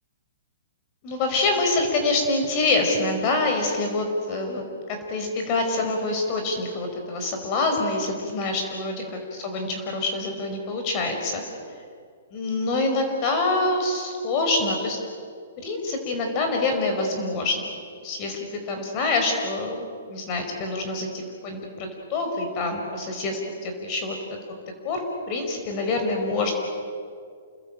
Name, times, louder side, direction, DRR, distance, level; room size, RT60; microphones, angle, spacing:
voice 1, 1.0-9.0 9.3-11.4 12.3-15.0 15.6-17.6 18.0-24.2 24.5-24.6 24.8-26.5, left 2 dB, 35° left, 4 dB, 5.0 m, -26 dB
29.0 x 20.5 x 8.9 m, 2.1 s
hypercardioid pair, 145°, 0 cm